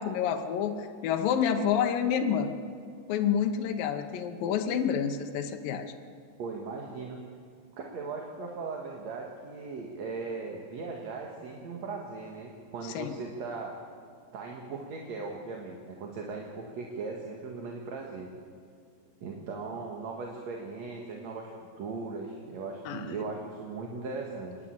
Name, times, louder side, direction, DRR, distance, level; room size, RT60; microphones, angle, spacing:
voice 1, 0.0-2.5 3.1-5.9 12.8-13.1 22.9-23.0, left 8 dB, 75° left, 5 dB, 2.7 m, -28 dB
voice 2, 6.4-7.2 7.7-13.8 14.3-18.3 19.2-21.5 21.8-24.6, right 4 dB, 55° right, 0 dB, 2.5 m, -38 dB
27.5 x 11.0 x 8.9 m, 2.3 s
omnidirectional pair, 4.2 m